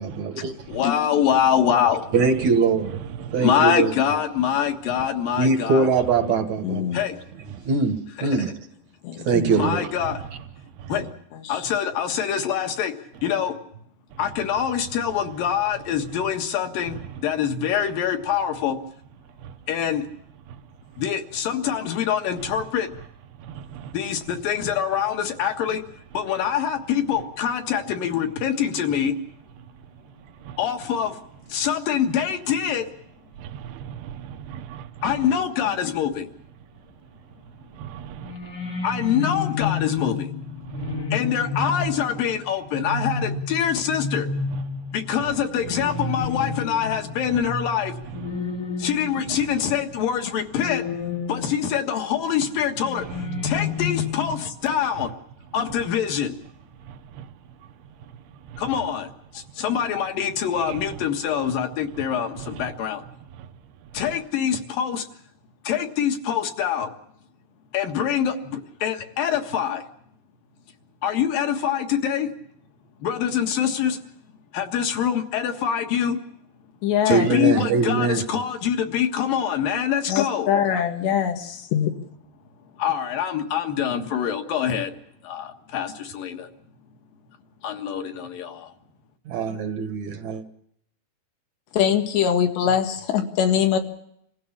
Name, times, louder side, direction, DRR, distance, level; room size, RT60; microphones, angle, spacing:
voice 1, 0.0-0.5 2.1-2.9 3.3-3.9 5.4-7.0 7.7-8.5 9.3-9.9 77.1-78.2 89.3-90.4, right 4 dB, 60° right, 2.2 m, -22 dB
voice 2, 0.7-2.0 3.4-5.9 6.9-7.1 8.2-8.3 9.6-10.2 10.9-11.0 11.5-12.9 13.2-13.5 14.2-17.0 17.2-18.8 19.7-20.0 21.0-22.9 23.9-25.8 26.1-29.1 30.6-31.1 31.5-32.8 35.0-36.2 38.8-40.2 41.1-44.3 44.9-47.9 48.8-50.8 51.3-53.0 53.4-55.1 55.5-56.3 58.6-59.1 59.6-63.0 63.9-65.0 65.7-66.9 67.7-69.8 71.0-72.3 73.0-74.0 74.5-76.2 77.1-80.5 82.8-84.9 85.3-86.5 87.6-88.7, left 8 dB, 60° left, 3.0 m, -24 dB
voice 3, 3.0-3.4 5.0-5.1 7.5-7.6 10.8-10.9 19.4-19.5 23.4-24.0 30.4-30.6 33.4-35.0 37.7-38.4 40.6-41.1 44.5-44.6 45.7-45.8 48.2-48.3 53.1-53.2 56.9-57.3 60.6-60.8 62.4-62.7 63.4-63.5 64.0-64.1, right 9 dB, 75° right, 2.9 m, -38 dB
voice 4, 6.6-7.0 9.0-9.5 11.0-11.1 11.3-11.7 76.8-77.3 80.1-81.9 91.7-93.8, left 9 dB, 85° left, 3.9 m, -23 dB
sound 1, 38.2-49.8 50.6-51.9 52.8-54.4, left 4 dB, 45° left, 1.4 m, -30 dB
27.0 x 16.5 x 7.3 m
omnidirectional pair, 4.8 m